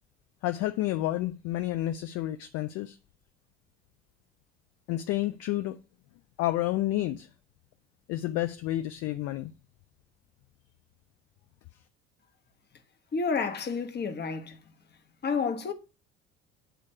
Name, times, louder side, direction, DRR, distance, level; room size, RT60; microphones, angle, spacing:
voice 1, 0.4-3.0 4.9-5.8 6.4-7.3 8.1-9.5, left 15 dB, 50° left, 0.6 m, -30 dB
voice 2, 13.1-14.6 15.2-15.7, left 5 dB, 30° left, 1.3 m, -30 dB
9.0 x 3.2 x 6.6 m
figure-of-eight pair, 60°, 32 cm